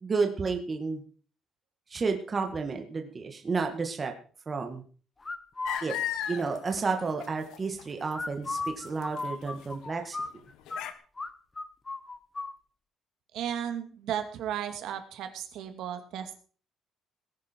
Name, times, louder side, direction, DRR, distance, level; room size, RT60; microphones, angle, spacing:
voice 1, 0.0-1.0 1.9-4.1 4.5-4.8 5.8-5.9 6.3-10.2, right 4 dB, 25° right, 4 dB, 1.8 m, -31 dB
sound 1, 5.2-5.8 8.1-10.8 11.2-11.3 11.6-12.5, left 3 dB, 15° left, 1.0 m, -35 dB
sound 2, 5.6-7.8 8.1-9.3 9.6-9.7 10.2-10.3 10.7-10.9, left 10 dB, 90° left, 1.6 m, -35 dB
voice 2, 13.3-16.4, right 9 dB, 70° right, 7 dB, 2.3 m, -34 dB
19.0 x 10.5 x 4.6 m, 0.41 s
cardioid pair, 160°, 0 cm